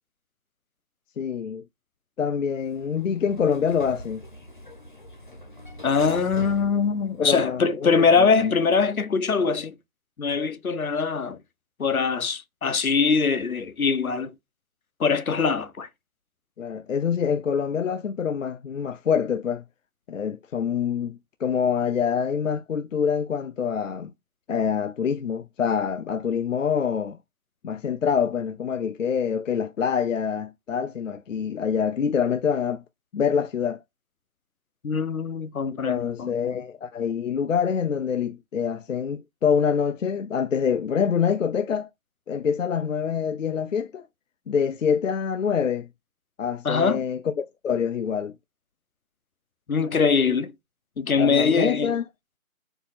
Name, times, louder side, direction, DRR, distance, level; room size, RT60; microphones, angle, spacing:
voice 1, 1.2-1.6 2.2-4.2 7.2-8.1 8.3-8.5 16.6-19.6 20.1-24.1 24.5-27.2 27.6-32.8 33.1-33.8 35.9-41.9 42.3-44.1 44.5-45.9 46.4-48.3 51.2-52.0, left 7 dB, 65° left, 0.5 m, -25 dB
Sliding door, 2.6-7.8, left 1 dB, 35° left, 0.9 m, -42 dB
voice 2, 5.8-9.8 10.2-11.4 11.8-14.3 15.0-15.9 34.8-36.6 46.6-47.0 49.7-50.5 51.0-51.9, left 5 dB, 85° left, 1.0 m, -23 dB
4.4 x 2.8 x 4.2 m
figure-of-eight pair, 175°, 41 cm